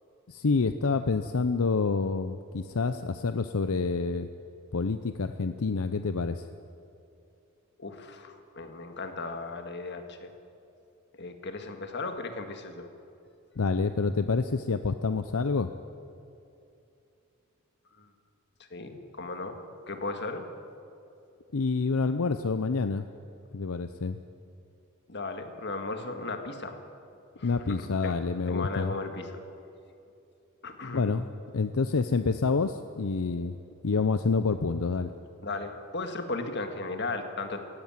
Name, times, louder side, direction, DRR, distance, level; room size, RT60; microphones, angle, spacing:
voice 1, 0.3-4.3 4.7-6.5 13.6-15.7 21.5-23.0 23.5-24.2 27.4-28.9 30.9-31.3 31.5-33.6 33.8-35.1, left 4 dB, 80° left, 10 dB, 0.6 m, -27 dB
voice 2, 7.8-10.3 11.2-12.9 18.0-18.1 18.7-19.6 19.9-20.5 25.1-26.8 27.4-28.1 28.5-29.3 30.6-31.1 35.4-37.6, left 3 dB, 55° left, 6 dB, 1.9 m, -36 dB
18.0 x 16.5 x 9.0 m, 2.7 s
head